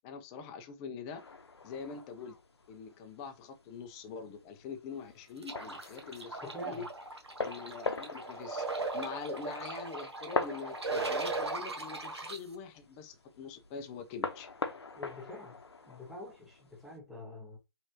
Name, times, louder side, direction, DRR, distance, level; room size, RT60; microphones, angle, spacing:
voice 1, 0.0-1.2 1.6-2.4 2.7-6.9 7.4-8.6 8.9-14.5, left 6 dB, 15° left, 0.4 m, -44 dB
sound 1, 1.1-17.0, left 4 dB, 80° left, 0.6 m, -43 dB
sound 2, 5.4-12.4, right 3 dB, 85° right, 1.0 m, -38 dB
voice 2, 6.5-6.9 15.0-15.6 15.9-17.6, equal, ahead, 0.8 m, -45 dB
3.2 x 3.0 x 2.6 m
figure-of-eight pair, 140°, 14 cm